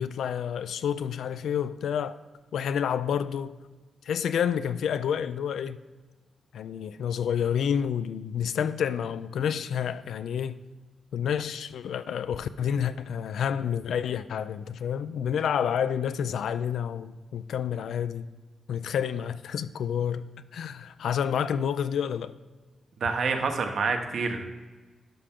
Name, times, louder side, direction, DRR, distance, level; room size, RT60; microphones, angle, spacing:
voice 1, 0.0-2.2 2.5-3.6 4.1-5.8 6.5-10.6 11.1-18.3 18.7-20.2 20.5-22.3, left 8 dB, 85° left, 0.3 m, -29 dB
voice 2, 23.0-24.4, right 4 dB, 65° right, 1.1 m, -27 dB
11.5 x 5.7 x 3.7 m
cardioid pair, 110°, 0 cm